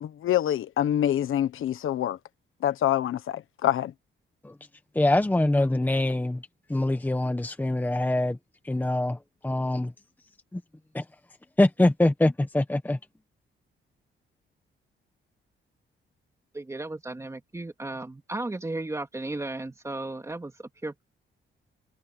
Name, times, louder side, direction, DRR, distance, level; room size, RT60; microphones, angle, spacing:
voice 1, 0.0-2.2 2.6-3.9, left 11 dB, 75° left, 1.3 m, -26 dB
voice 2, 4.9-6.4 6.7-8.4 8.6-9.9 10.9-11.0 11.6-13.0, left 1 dB, 10° left, 1.3 m, -24 dB
voice 3, 16.5-21.0, right 2 dB, 15° right, 2.6 m, -35 dB
wide cardioid pair, 150°, 21 cm